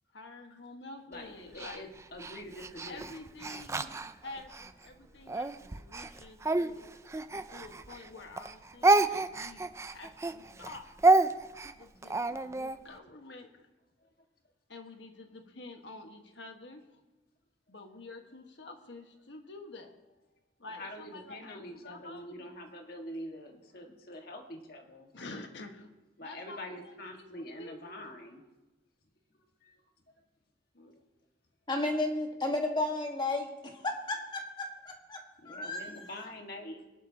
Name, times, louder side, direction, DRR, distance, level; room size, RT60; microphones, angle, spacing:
voice 1, 0.1-1.8 2.9-3.9 4.2-6.9 7.5-10.9 11.8-13.7 14.7-17.0 17.7-19.9 20.6-22.4 25.1-25.9 26.2-28.0 30.7-31.0, left 2 dB, 70° left, 4 dB, 1.5 m, -48 dB
voice 2, 1.1-3.1 14.0-14.1 20.7-25.1 26.2-28.4 29.6-29.8 35.4-36.9, left 1 dB, 50° left, 3 dB, 1.7 m, -45 dB
Speech, 1.6-4.7 5.3-8.1 8.4-12.8, right 2 dB, 15° right, 0.4 m, -29 dB
voice 3, 31.7-33.5 33.8-36.1, left 2 dB, 25° left, 2 dB, 1.5 m, -33 dB
23.0 x 11.5 x 2.9 m, 1.1 s
head